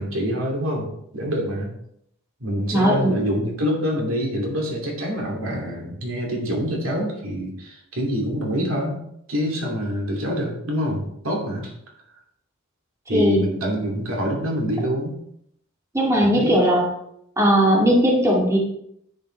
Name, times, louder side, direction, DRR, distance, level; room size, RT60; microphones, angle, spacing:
voice 1, 0.0-1.7 2.4-9.0 9.3-11.7 13.1-15.2 16.2-16.8, equal, 70° right, -1 dB, 2.6 m, -26 dB
voice 2, 2.7-3.1 13.1-13.4 15.9-16.8 17.4-18.6, equal, 15° right, -3 dB, 2.2 m, -18 dB
10.0 x 9.0 x 3.3 m, 0.74 s
head